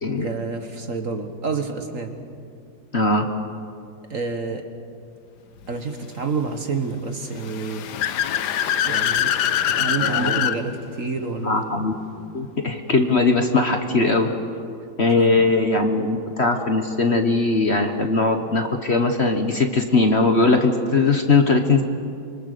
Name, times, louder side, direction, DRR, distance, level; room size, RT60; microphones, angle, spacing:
voice 1, 0.2-2.2 4.1-4.7 5.7-7.9 8.8-9.3 9.6-11.7 15.2-15.5, right 4 dB, 45° right, 6 dB, 1.8 m, -28 dB
voice 2, 2.9-3.3 10.0-10.4 11.4-11.9 12.3-14.3 15.0-21.8, left 3 dB, 40° left, 5 dB, 1.4 m, -20 dB
Car / Accelerating revving vroom, 7.3-10.6, left 10 dB, 65° left, 1.4 m, -23 dB
26.0 x 25.5 x 6.8 m, 2.5 s
omnidirectional pair, 2.0 m